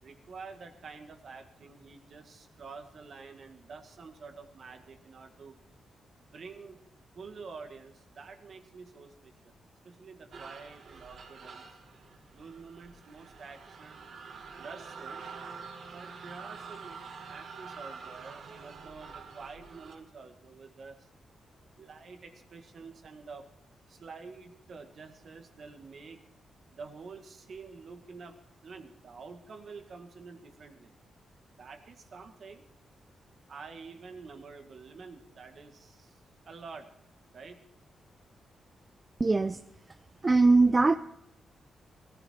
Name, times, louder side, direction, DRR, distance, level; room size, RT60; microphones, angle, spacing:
voice 1, 0.0-5.6 6.1-6.8 7.1-9.6 9.8-11.6 12.3-14.0 14.6-15.2 15.9-21.1 21.8-23.5 23.9-26.2 26.7-28.4 28.6-30.9 31.6-32.6 33.5-36.2 36.5-36.9 37.3-37.6, right 4 dB, 55° right, 6 dB, 1.9 m, -48 dB
sound 1, 10.3-19.9, right 5 dB, 70° right, 2.0 m, -46 dB
voice 2, 39.2-39.6 40.2-41.0, right 3 dB, 25° right, 10 dB, 0.5 m, -21 dB
18.5 x 14.5 x 4.5 m, 0.75 s
cardioid pair, 115°, 0 cm